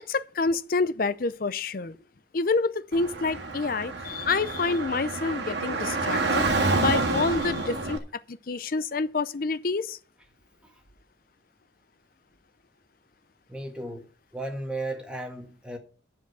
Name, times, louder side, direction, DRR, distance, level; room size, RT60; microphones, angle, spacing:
voice 1, 0.1-1.9 2.3-10.0, left 3 dB, 50° left, 0.5 m, -28 dB
Car / Traffic noise roadway noise, 2.9-8.0, right 3 dB, 65° right, 1.8 m, -28 dB
voice 2, 13.5-15.8, right 2 dB, 5° right, 1.6 m, -35 dB
10.5 x 5.0 x 7.9 m
head